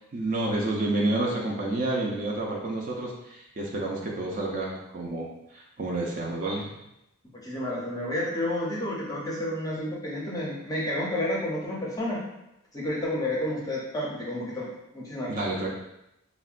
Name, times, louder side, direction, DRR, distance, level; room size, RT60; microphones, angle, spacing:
voice 1, 0.1-5.3 5.5-6.7 15.3-15.7, right 2 dB, 40° right, -2 dB, 0.4 m, -29 dB
voice 2, 7.3-12.2 12.7-14.7 14.9-15.3, left 1 dB, 15° left, -4 dB, 0.5 m, -30 dB
3.5 x 2.1 x 2.4 m, 0.86 s
head